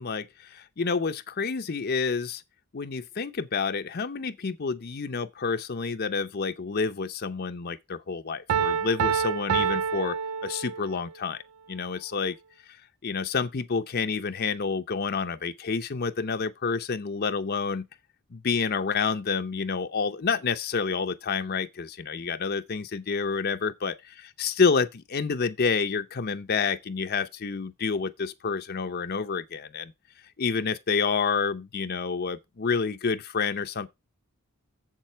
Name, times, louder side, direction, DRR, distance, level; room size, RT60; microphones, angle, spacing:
voice 1, 0.0-2.4 2.7-10.2 10.4-11.4 11.7-12.4 12.7-12.8 13.0-17.8 18.3-29.9 30.4-33.9, left 5 dB, 45° left, 0.6 m, -29 dB
Piano, 8.5-11.1, right 7 dB, 80° right, 0.4 m, -27 dB
7.5 x 7.4 x 4.5 m
head